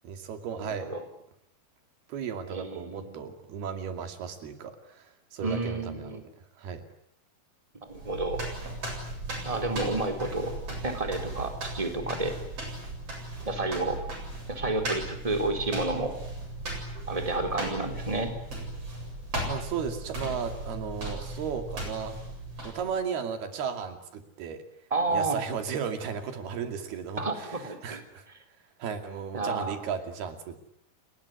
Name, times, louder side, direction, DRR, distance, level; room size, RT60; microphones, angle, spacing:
voice 1, 0.0-0.9 2.1-6.2 6.6-6.8 19.4-22.2 22.6-24.6 25.1-28.2 28.8-30.7, right 7 dB, 90° right, 7 dB, 4.5 m, -35 dB
voice 2, 0.6-1.0 2.5-3.2 5.4-6.2 7.8-8.4 9.4-10.5 10.8-12.4 13.5-14.1 14.5-16.1 17.1-18.3 24.9-25.4 27.2-28.0 29.3-29.8, right 2 dB, 10° right, 6 dB, 3.8 m, -30 dB
sound 1, 7.9-23.0, right 1 dB, 40° right, 8.6 m, -37 dB
29.5 x 20.5 x 9.7 m, 0.75 s
omnidirectional pair, 4.3 m